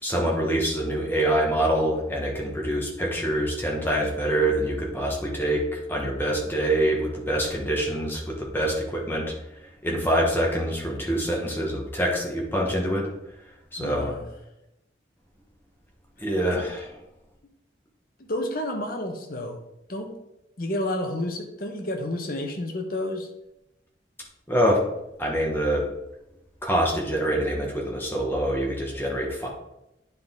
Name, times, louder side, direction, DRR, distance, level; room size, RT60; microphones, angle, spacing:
voice 1, 0.0-9.3 9.6-13.1 13.7-14.1 16.2-17.0 24.5-24.8 25.2-25.9 26.6-29.5, right 1 dB, 10° left, -1 dB, 1.2 m, -25 dB
voice 2, 13.8-14.3 16.5-16.6 18.2-19.6 19.9-20.1 20.6-23.3, left 1 dB, 50° left, 4 dB, 0.9 m, -30 dB
9.5 x 4.0 x 3.7 m, 0.89 s
head